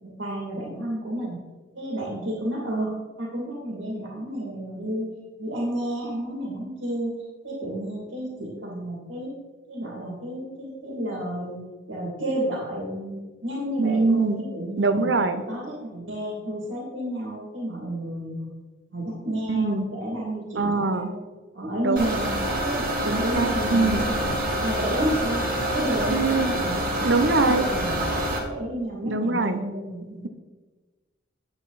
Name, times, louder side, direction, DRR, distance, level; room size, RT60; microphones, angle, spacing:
voice 1, 0.0-1.4 1.7-5.1 5.4-7.2 7.4-9.3 9.7-11.6 11.9-15.1 15.5-18.5 18.9-21.2 21.5-22.9 23.2-24.3 24.6-28.0 28.5-30.3, right 1 dB, 90° right, -3 dB, 2.5 m, -31 dB
voice 2, 13.8-14.4 14.8-15.4 19.5-19.9 20.6-21.1 21.8-22.1 23.1-24.0 26.1-26.5 27.0-27.7 29.0-29.6, right 3 dB, 70° right, 9 dB, 0.8 m, -23 dB
sound 1, 22.0-28.4, right 1 dB, 45° right, 1.9 m, -26 dB
9.6 x 7.9 x 4.1 m, 1.3 s
head